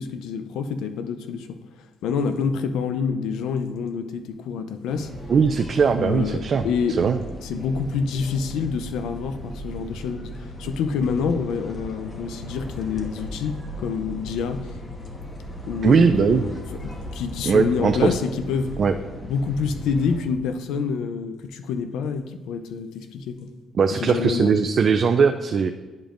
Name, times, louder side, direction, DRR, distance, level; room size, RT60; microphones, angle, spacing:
voice 1, 0.0-1.6 2.0-5.1 6.0-7.0 7.4-14.8 15.7-18.7 19.2-23.5 23.9-24.6, left 6 dB, 90° left, 9 dB, 0.5 m, -27 dB
sound 1, 4.9-20.2, equal, 30° left, 1.2 m, -37 dB
voice 2, 5.3-6.7 7.0-7.2 15.8-16.5 17.4-18.0 18.8-18.9 23.8-25.7, right 5 dB, 50° right, 5 dB, 0.3 m, -19 dB
10.5 x 5.2 x 2.5 m, 1.2 s
cardioid pair, 90°, 0 cm